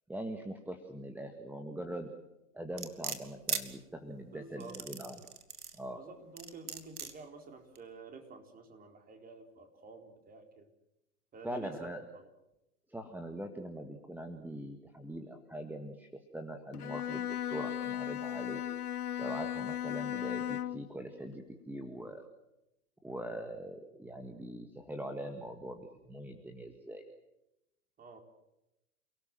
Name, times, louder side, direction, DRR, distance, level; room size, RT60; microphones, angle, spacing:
voice 1, 0.1-2.1 2.5-5.2 5.7-6.0 11.4-12.0 12.9-18.6 19.2-22.2 23.0-27.0, right 1 dB, 5° right, 6 dB, 1.8 m, -42 dB
Knife-Spoon, 2.8-3.6 4.6-5.8 6.4-7.1 7.7-7.8, right 6 dB, 85° right, 2.9 m, -37 dB
voice 2, 4.3-4.8 5.9-10.7 11.3-12.3 28.0-28.2, right 4 dB, 20° right, 5 dB, 4.2 m, -50 dB
Bowed string instrument, 16.7-20.9, left 11 dB, 80° left, 0.8 m, -36 dB
29.5 x 18.5 x 7.7 m, 0.90 s
hypercardioid pair, 120°, 44 cm